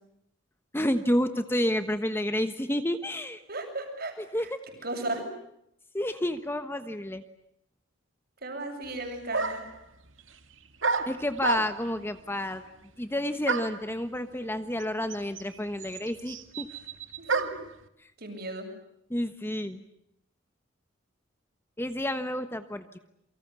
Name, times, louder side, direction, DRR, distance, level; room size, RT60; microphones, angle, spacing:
voice 1, 0.7-3.4 4.3-4.6 5.9-7.2 11.0-12.6 13.0-16.7 18.0-18.1 19.1-19.8 21.8-23.0, left 1 dB, 10° left, 9 dB, 1.2 m, -30 dB
voice 2, 3.5-4.5 4.8-5.3 8.4-9.6 17.2-17.5 18.2-18.7, right 2 dB, 55° right, 4 dB, 7.8 m, -35 dB
sound 1, 8.8-8.9 9.3-9.8 10.8-12.0 13.5-13.9 14.8-14.9 15.1-17.7, right 4 dB, 85° right, 2.1 m, -30 dB
28.5 x 24.5 x 8.3 m, 0.78 s
head